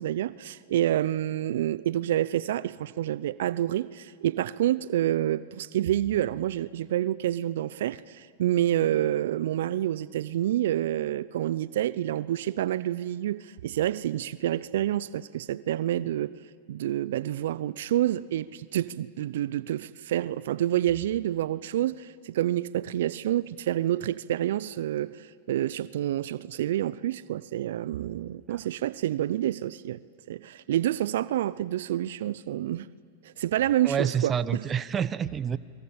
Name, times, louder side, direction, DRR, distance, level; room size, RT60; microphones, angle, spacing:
voice 1, 0.0-16.3 16.7-30.0 30.3-32.9 33.2-34.6, right 12 dB, 70° right, 18 dB, 0.6 m, -28 dB
voice 2, 33.8-35.6, right 8 dB, 25° right, 16 dB, 1.0 m, -28 dB
29.5 x 23.0 x 8.8 m, 2.2 s
hypercardioid pair, 115°, 0 cm